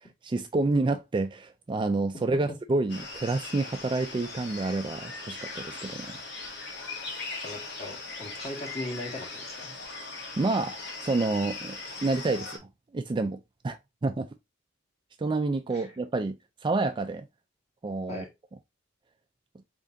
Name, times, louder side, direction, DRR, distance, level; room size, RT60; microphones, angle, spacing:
voice 1, 0.2-6.2 10.4-12.6 12.9-14.3 15.2-16.4 16.6-17.3 17.8-18.2, right 3 dB, 25° right, 0.4 m, -29 dB
sound 1, 2.9-12.6, left 3 dB, 60° left, 1.4 m, -39 dB
voice 2, 7.4-9.8 15.7-15.9 18.1-18.3, left 1 dB, 35° left, 1.9 m, -39 dB
4.4 x 3.7 x 2.6 m
head